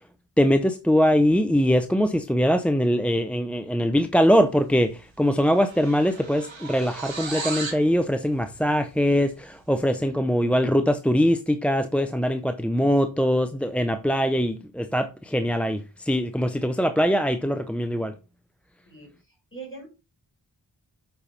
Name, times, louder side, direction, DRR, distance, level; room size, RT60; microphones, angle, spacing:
voice 1, 0.4-18.1, equal, 5° left, 0.5 m, -22 dB
sound 1, 4.7-4.9 5.2-7.9, right 4 dB, 85° right, 1.7 m, -36 dB
voice 2, 18.8-19.9, right 4 dB, 25° left, 5.0 m, -42 dB
8.0 x 5.8 x 4.1 m
wide cardioid pair, 50°, 45 cm